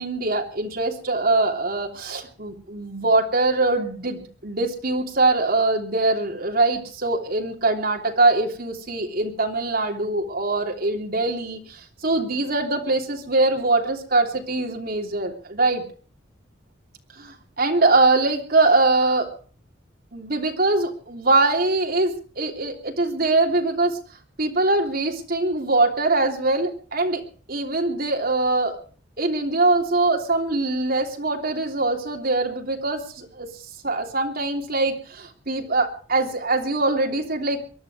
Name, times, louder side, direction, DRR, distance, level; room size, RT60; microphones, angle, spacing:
voice 1, 0.0-15.8 17.1-19.3 20.1-24.0 24.4-27.2 27.5-28.8 29.2-33.5 33.8-37.7, right 2 dB, 55° right, 2 dB, 3.2 m, -22 dB
23.0 x 11.5 x 5.0 m, 0.41 s
head